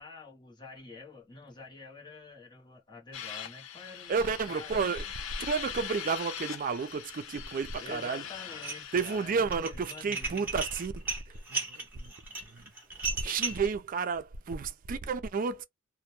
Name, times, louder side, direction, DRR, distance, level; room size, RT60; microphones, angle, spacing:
voice 1, 0.0-4.2 4.5-5.1 7.8-10.5, left 4 dB, 20° left, 0.8 m, -47 dB
sound 1, 3.1-9.4, left 9 dB, 75° left, 0.4 m, -42 dB
voice 2, 4.1-5.0 5.4-8.2 8.9-12.1 12.5-12.7 13.1-15.6, right 5 dB, 45° right, 0.4 m, -32 dB
Dishes pots and pans, 8.5-9.1 9.4-13.7, right 3 dB, 10° right, 0.9 m, -35 dB
2.1 x 2.1 x 2.9 m
head